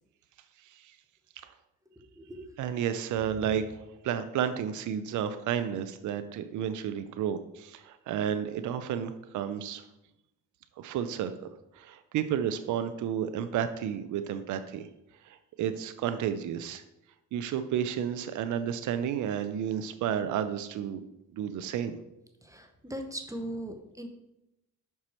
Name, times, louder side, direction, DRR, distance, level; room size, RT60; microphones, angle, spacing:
voice 1, 2.6-3.6 4.0-9.8 10.8-11.5 11.7-14.9 15.2-16.8 17.3-21.0 21.3-22.0, right 9 dB, 75° right, 10 dB, 0.6 m, -31 dB
voice 2, 22.4-24.1, right 1 dB, 10° right, 5 dB, 0.8 m, -39 dB
6.1 x 4.7 x 4.2 m, 0.88 s
cardioid pair, 90°, 30 cm